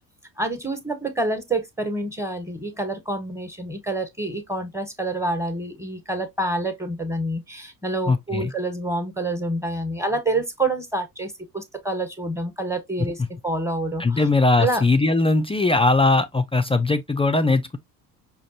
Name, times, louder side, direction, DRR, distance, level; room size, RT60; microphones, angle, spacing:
voice 1, 0.4-13.2 13.4-14.3 14.6-14.8, right 2 dB, 5° right, 1.2 m, -27 dB
voice 2, 8.1-8.5 14.0-17.8, left 3 dB, 15° left, 0.3 m, -20 dB
5.1 x 2.4 x 2.7 m
hypercardioid pair, 55°, 46 cm